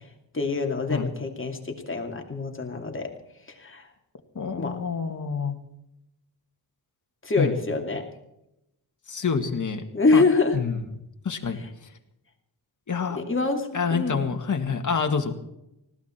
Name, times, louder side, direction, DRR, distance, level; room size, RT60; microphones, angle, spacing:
voice 1, 0.3-3.1 3.5-3.9 4.6-4.7 7.2-8.1 9.9-10.6 13.2-14.2, left 3 dB, 30° left, 3 dB, 2.5 m, -25 dB
voice 2, 4.4-5.6 7.4-7.5 9.1-9.8 10.1-10.2 10.5-10.8 11.2-11.6 12.9-13.2 13.7-15.3, left 5 dB, 45° left, 5 dB, 2.0 m, -27 dB
19.5 x 16.0 x 4.5 m, 0.85 s
wide cardioid pair, 115°, 43 cm